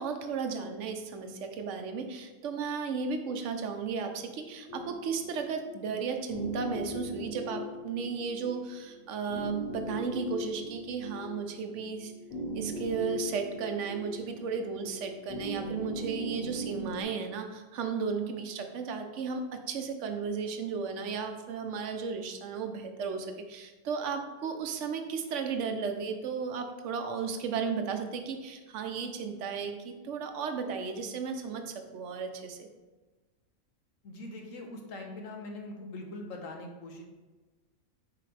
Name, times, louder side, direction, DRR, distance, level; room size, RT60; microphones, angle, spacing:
voice 1, 0.0-12.1 12.5-32.7, right 5 dB, 70° right, 6 dB, 1.1 m, -34 dB
sound 1, 4.7-17.0, equal, 35° left, 2.3 m, -39 dB
voice 2, 34.0-37.0, left 2 dB, 80° left, 2 dB, 1.4 m, -42 dB
8.6 x 4.9 x 3.3 m, 1.2 s
omnidirectional pair, 1.3 m